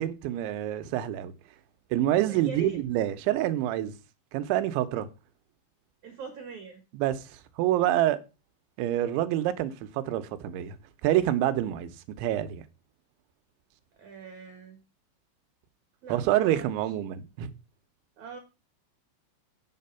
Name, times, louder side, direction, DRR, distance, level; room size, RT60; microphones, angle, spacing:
voice 1, 0.0-1.3 1.9-3.9 4.3-5.1 6.9-8.2 8.8-10.8 11.0-12.6 16.1-17.5, right 13 dB, 85° right, 3.2 m, -27 dB
voice 2, 2.2-2.8 6.0-6.8 14.0-14.8 16.0-16.7 18.2-18.4, right 5 dB, 55° right, 2.3 m, -41 dB
8.7 x 7.5 x 5.6 m
omnidirectional pair, 5.3 m